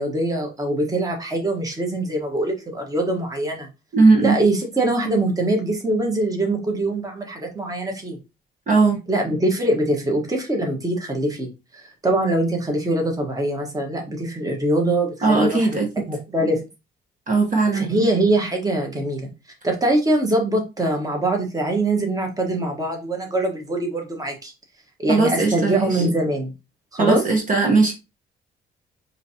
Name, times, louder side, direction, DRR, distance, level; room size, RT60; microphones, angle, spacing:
voice 1, 0.0-3.7 4.2-8.2 9.1-11.5 11.7-16.6 17.7-19.3 19.6-24.5 25.0-26.5 26.9-27.2, right 1 dB, 15° right, 1.3 m, -23 dB
voice 2, 3.9-4.4 8.7-9.0 15.2-15.9 17.3-17.9 25.1-26.0 27.0-27.9, right 3 dB, 40° right, 1.2 m, -18 dB
4.9 x 2.8 x 2.8 m
cardioid pair, 90°, 20 cm